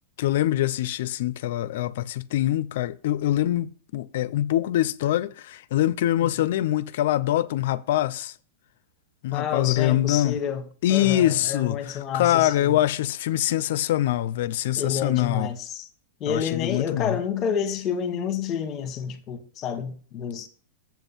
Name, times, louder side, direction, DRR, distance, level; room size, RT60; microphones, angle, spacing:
voice 1, 0.2-8.3 9.2-10.4 10.8-15.5 16.3-17.2, left 13 dB, 65° left, 0.4 m, -24 dB
voice 2, 9.3-10.6 10.9-12.8 14.8-15.9 16.2-20.5, left 7 dB, 30° left, 1.2 m, -29 dB
7.6 x 5.4 x 5.5 m
hypercardioid pair, 135°, 0 cm